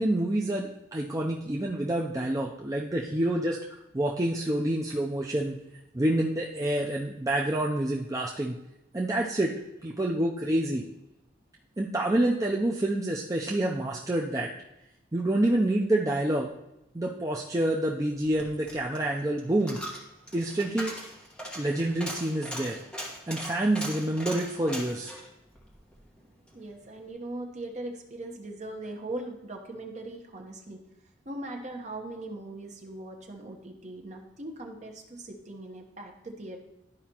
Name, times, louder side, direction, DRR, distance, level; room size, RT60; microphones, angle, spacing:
voice 1, 0.0-5.6 5.9-8.6 8.9-9.5 9.8-10.8 11.8-14.5 15.1-16.5 16.9-19.8 20.3-20.9 21.6-22.8 23.3-25.1, right 1 dB, 20° right, -2 dB, 0.5 m, -27 dB
Coin (dropping), 18.2-26.6 26.9-27.0, equal, 5° left, 1.3 m, -40 dB
voice 2, 26.5-30.8 31.2-36.6, right 2 dB, 40° right, 2 dB, 1.0 m, -40 dB
12.0 x 4.9 x 2.9 m, 0.90 s
head